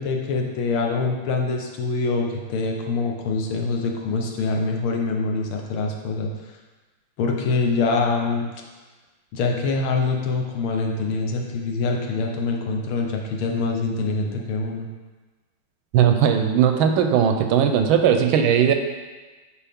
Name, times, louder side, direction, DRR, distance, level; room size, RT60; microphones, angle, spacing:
voice 1, 0.0-6.3 7.2-8.5 9.3-14.9, left 3 dB, 75° left, 1 dB, 1.8 m, -24 dB
voice 2, 15.9-18.7, right 8 dB, 75° right, 6 dB, 1.3 m, -18 dB
9.9 x 4.8 x 3.5 m, 1.3 s
omnidirectional pair, 2.4 m